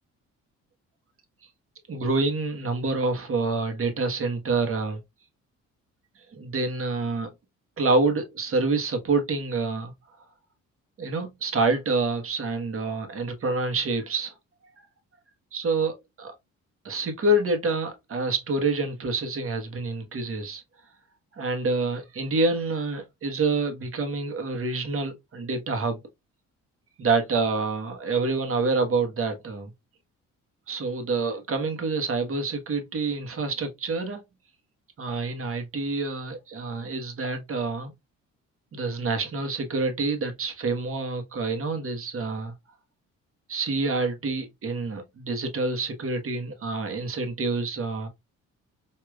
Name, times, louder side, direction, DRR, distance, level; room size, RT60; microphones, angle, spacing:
voice 1, 1.9-5.0 6.3-7.3 7.8-9.9 11.0-14.3 15.5-16.3 16.8-20.6 21.3-26.0 27.0-29.7 30.7-34.2 35.0-37.9 38.7-42.5 43.5-48.1, right 3 dB, 45° right, 1.3 m, -27 dB
4.8 x 2.8 x 2.3 m
cardioid pair, 90°, 30 cm